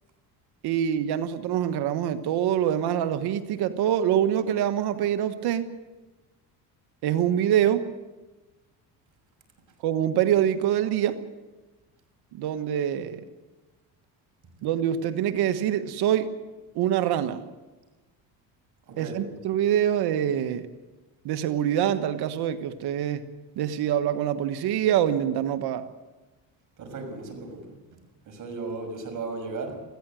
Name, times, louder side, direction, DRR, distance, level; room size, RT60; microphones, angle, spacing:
voice 1, 0.6-5.7 7.0-7.9 9.8-11.2 12.3-13.2 14.6-16.3 16.7-17.4 19.0-20.7 21.2-23.3 23.6-25.9, right 10 dB, 70° right, 11 dB, 1.4 m, -25 dB
voice 2, 18.9-19.3 26.8-27.7 28.3-29.8, right 3 dB, 50° right, 5 dB, 6.3 m, -35 dB
20.5 x 15.5 x 9.0 m, 1.2 s
cardioid pair, 95°, 40 cm